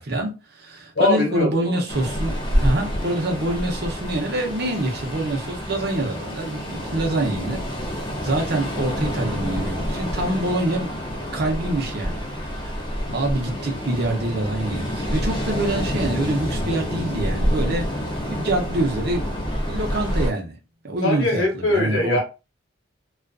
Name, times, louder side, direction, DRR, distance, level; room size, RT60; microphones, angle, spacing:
voice 1, 0.0-7.6 8.2-11.0 11.3-12.7 13.1-17.9 18.3-19.2 19.7-20.6 20.8-22.2, right 2 dB, 50° right, 0.7 m, -26 dB
voice 2, 1.0-1.8 21.0-22.2, left 1 dB, 85° left, 1.0 m, -21 dB
Ocean, 1.9-20.3, equal, 25° left, 0.5 m, -27 dB
2.4 x 2.4 x 2.3 m
head